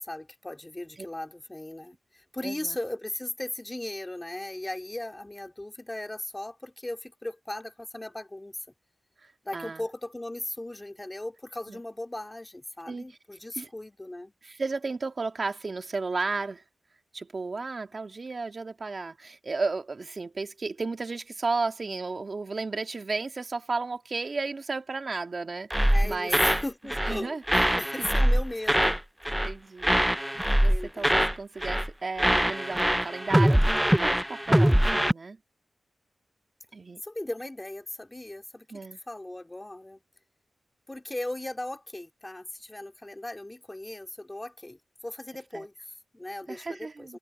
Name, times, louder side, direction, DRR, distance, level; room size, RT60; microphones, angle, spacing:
voice 1, 0.0-8.6 9.4-14.3 25.9-29.0 30.7-31.3 37.0-38.7 39.1-40.0 40.9-47.2, left 1 dB, 15° left, 2.2 m, -37 dB
voice 2, 2.4-2.8 9.2-9.8 11.7-11.8 12.9-13.1 13.6-13.7 14.4-16.6 17.1-26.4 27.0-27.4 27.7-28.1 29.4-30.0 30.5-35.4 36.7-37.0 38.7-39.0 45.5-45.7 46.5-47.2, right 3 dB, 45° right, 2.2 m, -33 dB
sound 1, 25.7-26.6 26.9-27.2 27.5-29.0 29.2-29.5 29.8-31.4 31.6-31.9 32.2-35.1, equal, 5° right, 0.3 m, -23 dB
wide cardioid pair, 95°, 0 cm